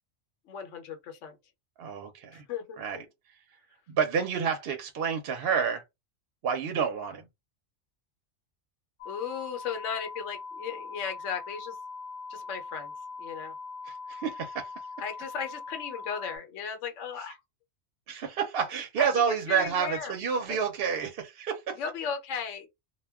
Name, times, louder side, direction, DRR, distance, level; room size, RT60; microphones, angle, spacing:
voice 1, 0.5-1.4 2.3-2.8 9.0-11.8 12.3-12.9 13.2-13.5 15.0-17.4 19.0-19.1 19.5-20.1 20.5-20.6 21.7-22.7, left 7 dB, 80° left, 1.0 m, -36 dB
voice 2, 1.8-2.4 2.8-3.0 3.9-5.8 6.4-7.2 13.9-14.7 18.1-21.8, right 7 dB, 60° right, 0.7 m, -29 dB
sound 1, 9.0-16.4, left 4 dB, 50° left, 0.8 m, -41 dB
2.2 x 2.2 x 3.4 m
omnidirectional pair, 1.2 m